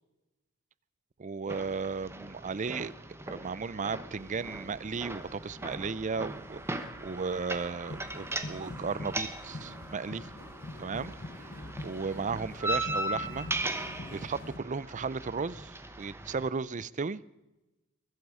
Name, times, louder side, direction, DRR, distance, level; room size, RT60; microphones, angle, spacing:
voice 1, 1.2-2.9 3.3-10.3 10.8-11.2 11.4-11.5 11.8-13.5 14.1-17.2, right 4 dB, 35° right, 0.5 m, -35 dB
sound 1, 1.5-16.5, right 1 dB, 15° right, 1.2 m, -39 dB
sound 2, 4.1-9.6, equal, 55° right, 5.6 m, -57 dB
sound 3, 7.9-14.6, left 2 dB, 45° left, 1.0 m, -44 dB
22.0 x 12.5 x 4.9 m
head